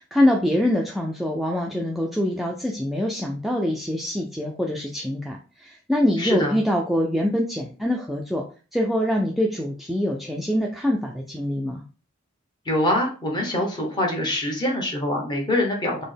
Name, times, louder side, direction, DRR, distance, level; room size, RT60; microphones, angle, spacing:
voice 1, 0.0-8.4 8.7-11.8, left 1 dB, ahead, -1 dB, 0.3 m, -24 dB
voice 2, 6.2-6.6 12.7-16.0, left 1 dB, 20° left, 0 dB, 1.0 m, -24 dB
4.1 x 2.1 x 3.3 m, 0.35 s
head